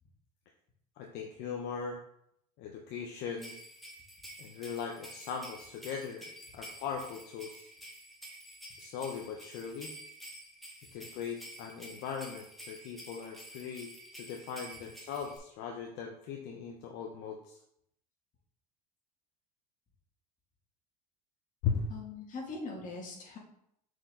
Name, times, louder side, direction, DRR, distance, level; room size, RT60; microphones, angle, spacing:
voice 1, 1.0-2.0 2.6-3.5 4.4-7.7 8.8-9.9 10.9-17.6 21.6-21.9, left 6 dB, 65° left, 2 dB, 1.0 m, -39 dB
sound 1, 3.4-15.4, equal, ahead, 2.1 m, -50 dB
voice 2, 21.9-23.4, left 3 dB, 40° left, -1 dB, 2.4 m, -41 dB
6.1 x 4.9 x 3.9 m, 0.73 s
supercardioid pair, 95°, 20 cm